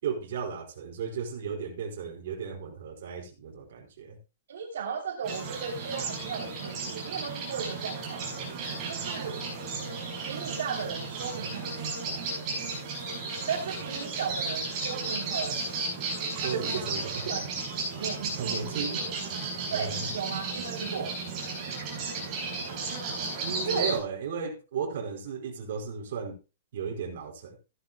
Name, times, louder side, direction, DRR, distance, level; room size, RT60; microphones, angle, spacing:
voice 1, 0.0-4.2 16.4-17.5 18.4-19.0 19.7-20.1 23.4-26.4 26.7-27.6, right 6 dB, 50° right, 1 dB, 4.7 m, -35 dB
voice 2, 4.5-8.2 8.9-9.4 10.2-12.2 13.5-15.6 16.4-17.6 18.0-19.1 19.7-21.1 23.6-23.9, right 6 dB, 70° right, 1 dB, 3.0 m, -36 dB
sound 1, 5.2-24.0, right 3 dB, 20° right, 5.7 m, -34 dB
15.5 x 11.5 x 2.2 m, 0.29 s
hypercardioid pair, 180°, 0 cm